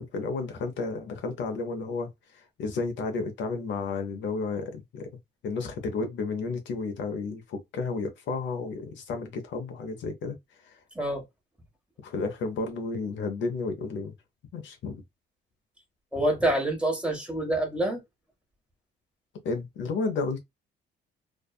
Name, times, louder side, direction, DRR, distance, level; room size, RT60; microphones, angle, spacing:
voice 1, 0.0-2.1 2.3-5.1 5.4-10.4 10.6-10.8 12.0-14.1 14.5-15.0 19.4-20.4, left 4 dB, 70° left, 0.7 m, -32 dB
voice 2, 16.1-18.0, right 1 dB, 5° right, 1.2 m, -26 dB
2.6 x 2.3 x 2.3 m
cardioid pair, 90°, 20 cm